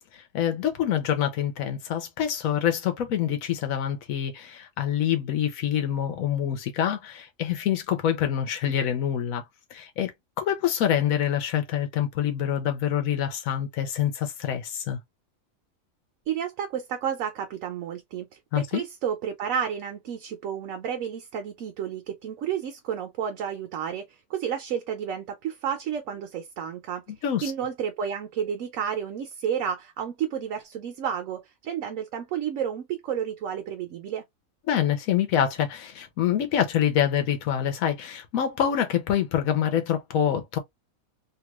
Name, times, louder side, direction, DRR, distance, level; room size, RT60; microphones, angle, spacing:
voice 1, 0.3-9.4 9.7-10.1 10.4-15.0 18.5-18.8 27.2-27.5 34.7-40.6, left 10 dB, 85° left, 1.1 m, -26 dB
voice 2, 16.3-27.0 27.4-34.2, right 8 dB, 75° right, 1.1 m, -31 dB
2.9 x 2.3 x 3.0 m
omnidirectional pair, 1.4 m